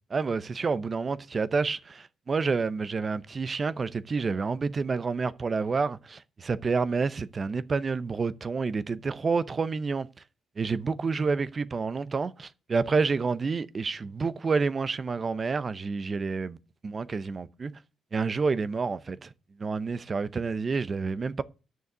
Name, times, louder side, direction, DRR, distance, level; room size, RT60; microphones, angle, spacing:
voice 1, 0.1-10.1 10.6-16.6 16.8-17.8 18.1-19.3 19.6-21.4, right 4 dB, 35° right, 0.7 m, -29 dB
9.4 x 6.3 x 8.3 m
cardioid pair, 90°, 0 cm